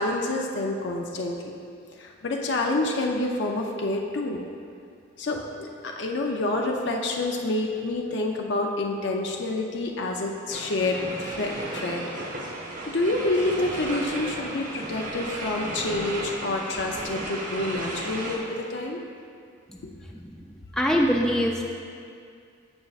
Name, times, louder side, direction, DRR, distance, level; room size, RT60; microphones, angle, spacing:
voice 1, 0.0-1.5 2.0-4.4 5.2-12.1 12.9-19.0 19.8-19.9, left 2 dB, 60° left, 0 dB, 0.5 m, -28 dB
sound 1, 10.5-18.4, right 1 dB, 40° right, 0.8 m, -34 dB
voice 2, 20.7-21.6, equal, 5° left, -1 dB, 0.3 m, -23 dB
14.0 x 5.2 x 2.4 m, 2.3 s
head